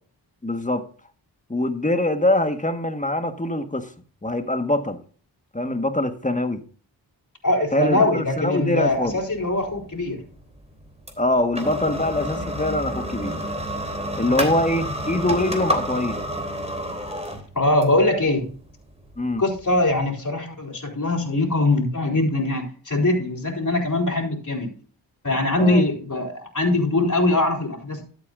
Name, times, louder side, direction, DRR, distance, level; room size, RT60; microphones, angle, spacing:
voice 1, 0.4-0.9 1.5-3.9 4.2-5.0 5.5-6.6 7.7-9.2 11.2-13.4 14.2-16.2 19.2-19.4 25.6-25.8, left 1 dB, 15° left, 1.5 m, -23 dB
voice 2, 7.4-10.2 14.2-14.5 17.6-18.5 19.4-24.7 25.2-28.0, left 2 dB, 40° left, 3.9 m, -22 dB
sound 1, 8.9-20.1, equal, 15° right, 3.2 m, -30 dB
13.0 x 8.4 x 2.6 m
cardioid pair, 40°, 46 cm